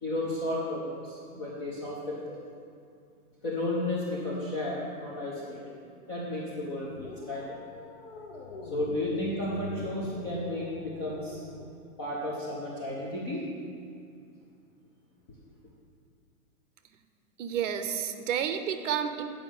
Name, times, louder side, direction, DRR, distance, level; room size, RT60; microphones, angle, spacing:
voice 1, 0.0-2.4 3.4-5.8 6.1-7.6 8.7-11.5 12.0-13.4, left 1 dB, 15° left, -6 dB, 0.5 m, -33 dB
sound 1, 6.9-11.7, left 4 dB, 40° left, 1.0 m, -43 dB
voice 2, 17.4-19.2, right 8 dB, 55° right, 9 dB, 0.8 m, -30 dB
8.7 x 5.1 x 7.0 m, 2.4 s
hypercardioid pair, 165°, 44 cm